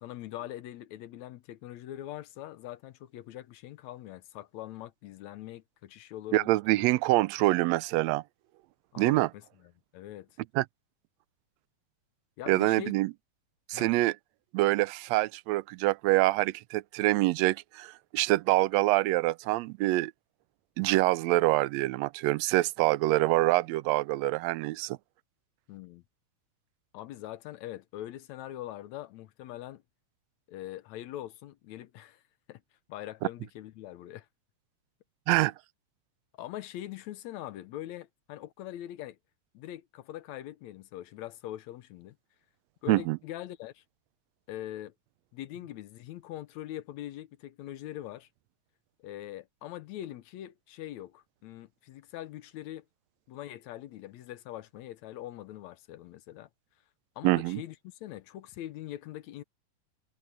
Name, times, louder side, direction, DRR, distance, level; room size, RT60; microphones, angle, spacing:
voice 1, 0.0-6.9 8.9-10.3 12.4-12.9 13.7-13.9 25.7-26.0 26.9-29.8 30.5-32.2 32.5-32.6 32.9-34.3 35.4-35.5 36.4-39.2 39.5-42.2 42.8-43.8 44.5-44.9 45.3-48.3 49.0-52.8 53.3-56.5 57.2-59.4, left 13 dB, 75° left, 2.1 m, -42 dB
voice 2, 6.3-8.2 9.0-9.3 10.5-10.6 12.5-13.1 13.7-14.1 14.5-20.1 20.8-25.0 35.3-35.5 42.9-43.2 57.2-57.6, right 19 dB, 80° right, 1.7 m, -25 dB
omnidirectional pair, 3.3 m